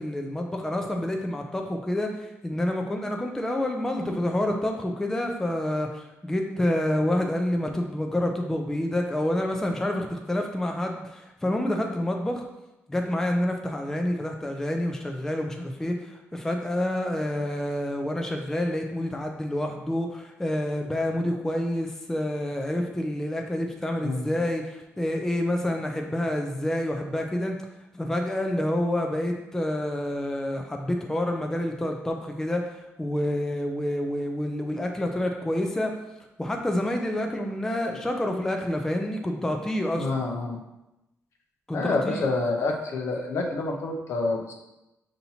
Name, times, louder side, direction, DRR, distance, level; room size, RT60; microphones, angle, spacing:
voice 1, 0.0-12.4 12.9-27.6 27.9-32.6 33.0-35.9 36.4-40.1 41.7-42.3, left 1 dB, 10° left, 2 dB, 0.4 m, -28 dB
voice 2, 40.0-40.6 41.7-44.6, left 3 dB, 60° left, 2 dB, 0.6 m, -28 dB
5.5 x 2.8 x 2.7 m, 0.95 s
cardioid pair, 110°, 5 cm